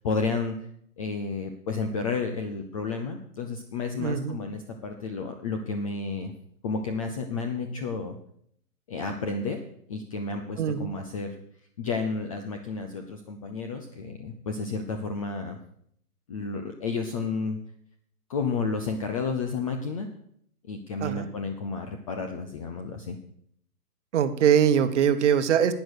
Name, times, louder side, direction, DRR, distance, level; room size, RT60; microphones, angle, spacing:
voice 1, 0.0-0.6 1.0-6.3 6.6-8.2 8.9-9.6 9.9-11.4 11.8-15.6 16.3-17.6 18.3-20.1 20.7-23.2, left 4 dB, 20° left, 5 dB, 0.7 m, -31 dB
voice 2, 4.0-4.4 10.6-10.9 21.0-21.3 24.1-25.7, right 8 dB, 45° right, 9 dB, 1.2 m, -22 dB
11.5 x 9.2 x 6.4 m, 0.68 s
hypercardioid pair, 150°, 47 cm